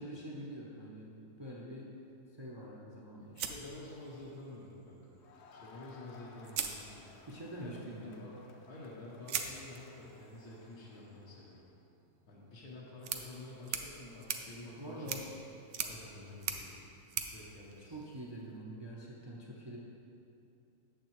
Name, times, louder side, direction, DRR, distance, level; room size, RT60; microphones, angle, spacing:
voice 1, 0.0-1.9 2.4-3.4 7.3-8.3 14.8-15.2 17.8-19.8, right 1 dB, 45° right, -3 dB, 0.3 m, -45 dB
voice 2, 3.3-5.2 5.5-7.1 7.6-8.3 8.7-11.6 12.3-15.3 15.8-16.8 17.3-18.0, left 2 dB, 85° left, -6 dB, 1.5 m, -49 dB
sound 1, 3.4-4.5 5.8-5.9 6.4-7.5 9.3-18.5, right 7 dB, 65° right, 0.7 m, -43 dB
Crowd, 5.2-11.7, left 4 dB, 60° left, 0.7 m, -59 dB
8.5 x 7.1 x 3.0 m, 2.7 s
omnidirectional pair, 1.6 m